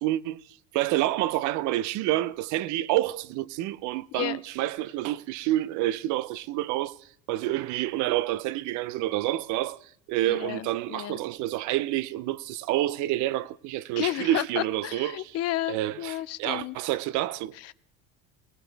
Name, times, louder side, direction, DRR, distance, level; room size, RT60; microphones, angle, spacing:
voice 1, 0.0-7.0 7.3-15.4 15.7-17.7, right 15 dB, 65° right, 0.7 m, -28 dB
voice 2, 10.3-11.2 14.0-16.8 17.6-17.7, left 15 dB, 50° left, 0.5 m, -32 dB
19.0 x 18.5 x 3.4 m
supercardioid pair, 95°, 32 cm